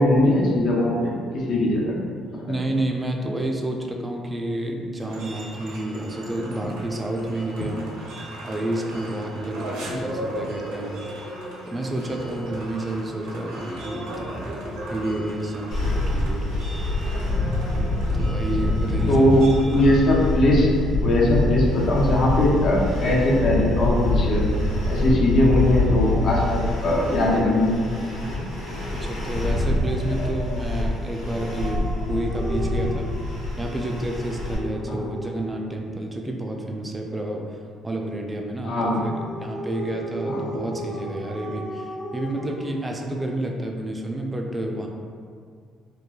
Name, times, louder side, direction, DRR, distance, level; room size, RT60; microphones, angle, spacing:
voice 1, 0.0-2.0 2.3-2.4 9.9-10.0 19.1-20.7 21.0-24.4 24.9-27.9 34.9-35.0 38.6-39.1 40.2-40.4, left 1 dB, 55° left, -3 dB, 0.6 m, -20 dB
voice 2, 2.5-8.0 8.4-11.0 11.7-14.6 14.8-16.6 18.1-19.3 28.9-37.6 37.8-39.1 39.4-44.9, right 1 dB, 15° right, 1 dB, 0.3 m, -30 dB
sound 1, 5.0-20.3, right 1 dB, 85° right, 0.5 m, -36 dB
sound 2, 15.7-34.6, left 2 dB, 75° left, 1.1 m, -25 dB
Dog, 29.8-35.6 38.8-43.4, equal, 20° left, 0.8 m, -36 dB
3.0 x 2.2 x 2.3 m, 2.1 s
cardioid pair, 95°, 0 cm